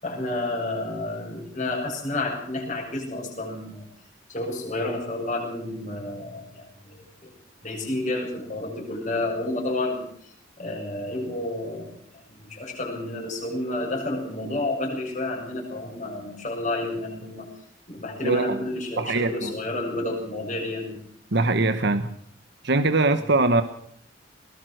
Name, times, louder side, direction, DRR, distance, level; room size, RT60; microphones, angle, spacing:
voice 1, 0.0-3.8 4.3-7.3 7.6-17.5 17.9-21.0 23.1-23.3, left 2 dB, 40° left, -2 dB, 7.3 m, -30 dB
voice 2, 18.2-18.6 19.0-19.5 21.3-22.1 22.6-23.6, right 2 dB, 60° right, 9 dB, 1.3 m, -22 dB
20.5 x 20.0 x 6.5 m, 0.64 s
head